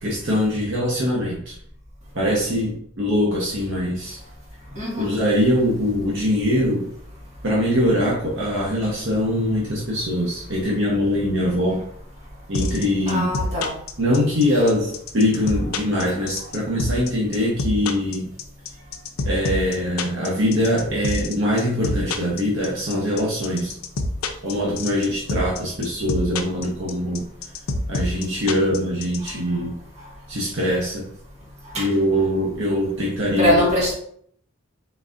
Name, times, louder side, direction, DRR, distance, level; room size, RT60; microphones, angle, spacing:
voice 1, 0.0-1.5 2.1-4.2 5.0-6.9 7.4-11.8 12.5-13.3 14.0-18.3 19.2-23.7 24.4-27.3 27.9-29.8 30.3-31.1 31.8-33.7, equal, 60° right, -5 dB, 0.9 m, -22 dB
voice 2, 4.8-5.2 13.1-13.7 31.7-31.8 33.4-33.9, left 1 dB, 35° right, -5 dB, 1.7 m, -21 dB
sound 1, 12.5-29.3, left 2 dB, 80° left, 0.5 m, -26 dB
4.0 x 4.0 x 2.5 m, 0.66 s
head